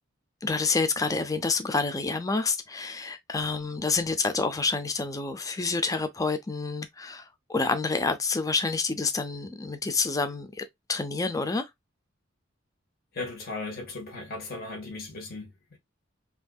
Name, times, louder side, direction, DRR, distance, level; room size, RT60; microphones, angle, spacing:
voice 1, 0.4-10.6 10.9-11.7, left 4 dB, 15° left, 0.5 m, -28 dB
voice 2, 13.1-15.8, left 3 dB, 50° left, 1.5 m, -37 dB
5.7 x 2.7 x 2.3 m
head